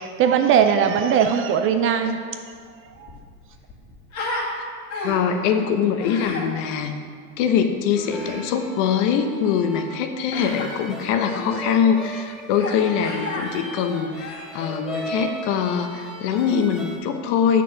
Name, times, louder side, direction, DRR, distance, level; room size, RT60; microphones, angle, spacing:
voice 1, 0.0-2.2 2.8-3.1 11.5-11.6, right 8 dB, 30° right, 7 dB, 0.4 m, -20 dB
Human voice, 2.5-2.6 2.9-4.5 4.9-5.4 6.0-6.5 7.9-8.5 10.3-10.7 11.3-11.5 12.5-12.8 13.0-13.5 14.1-15.2, left 2 dB, 40° left, 1.9 m, -33 dB
voice 2, 5.0-6.9 7.4-17.6, left 7 dB, 60° left, 7 dB, 1.0 m, -23 dB
sound 1, 8.1-17.0, right 1 dB, ahead, 1.0 m, -37 dB
7.2 x 6.2 x 5.8 m, 2.1 s
hypercardioid pair, 105°, 43 cm